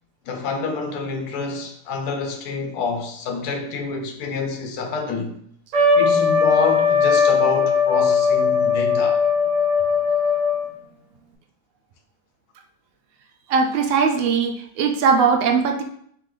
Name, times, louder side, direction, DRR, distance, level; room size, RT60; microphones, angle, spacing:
voice 1, 0.3-5.3 5.9-9.2, left 4 dB, 80° left, 1.3 m, -27 dB
Trumpet, 5.7-10.7, left 5 dB, 60° right, 1.1 m, -19 dB
voice 2, 13.5-15.8, right 5 dB, 85° right, 0.5 m, -19 dB
4.0 x 3.1 x 3.8 m
omnidirectional pair, 1.6 m